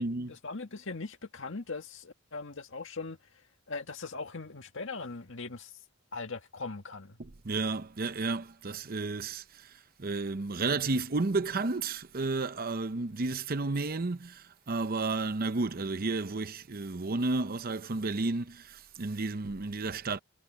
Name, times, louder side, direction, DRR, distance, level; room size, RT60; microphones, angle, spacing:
voice 1, 0.0-3.2 3.7-5.7 6.1-7.2, left 3 dB, 60° left, 1.9 m, -40 dB
voice 2, 7.2-20.2, right 3 dB, 45° right, 0.7 m, -32 dB
head